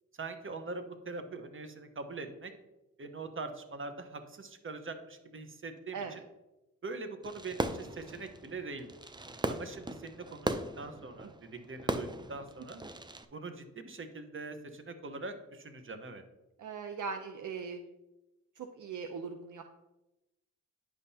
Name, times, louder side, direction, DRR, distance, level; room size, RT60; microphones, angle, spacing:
voice 1, 0.2-2.5 3.0-6.2 6.8-8.9 9.5-12.8 13.3-16.2, right 3 dB, 35° right, 8 dB, 1.0 m, -43 dB
voice 2, 5.9-6.2 11.2-11.3 16.6-17.8 18.6-19.6, right 5 dB, 65° right, 6 dB, 0.6 m, -40 dB
Fireworks, 7.2-13.3, right 2 dB, 15° right, 0.5 m, -38 dB
9.9 x 5.5 x 2.8 m, 0.98 s
cardioid pair, 60°, 34 cm